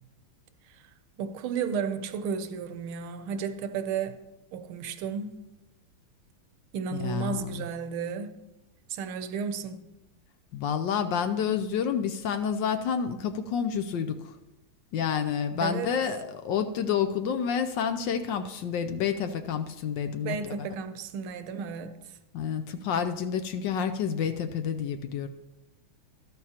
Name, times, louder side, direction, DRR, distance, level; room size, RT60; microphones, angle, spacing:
voice 1, 1.2-4.2 4.5-5.4 6.7-8.4 8.9-9.8 15.6-15.9 20.2-22.2, right 6 dB, 90° right, 1.6 m, -33 dB
voice 2, 6.9-7.6 10.5-14.3 14.9-20.4 22.3-25.3, left 7 dB, 75° left, 1.2 m, -29 dB
12.5 x 12.5 x 2.9 m
omnidirectional pair, 2.3 m